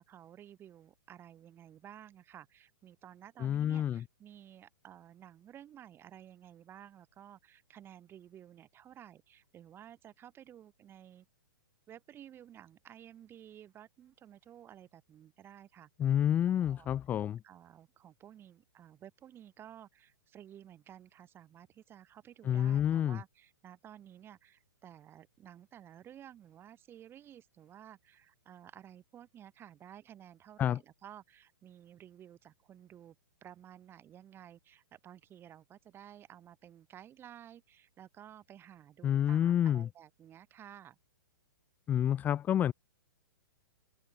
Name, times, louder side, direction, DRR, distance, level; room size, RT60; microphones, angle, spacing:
voice 1, 0.0-11.3 11.9-15.9 16.4-16.9 17.4-33.1 33.4-41.0, right 10 dB, 20° right, 6.5 m, -54 dB
voice 2, 3.4-4.0 16.0-17.4 22.5-23.2 30.6-30.8 39.0-39.9 41.9-42.7, left 10 dB, 15° left, 0.4 m, -28 dB
hypercardioid pair, 145°, 12 cm